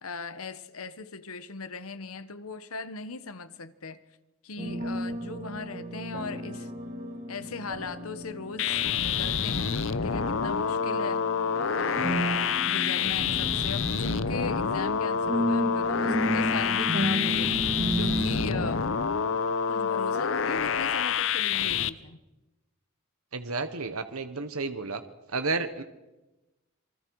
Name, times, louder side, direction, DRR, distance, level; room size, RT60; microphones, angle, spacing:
voice 1, 0.0-4.0 4.4-6.7 7.3-12.3 12.6-18.9 19.7-22.2, left 4 dB, 80° left, 1.2 m, -39 dB
sound 1, 4.6-18.7, equal, 40° right, 2.3 m, -33 dB
sound 2, 8.6-21.9, left 7 dB, 60° left, 0.8 m, -27 dB
voice 2, 23.3-25.0 25.3-25.8, right 3 dB, 85° right, 1.2 m, -31 dB
27.5 x 23.5 x 4.8 m
head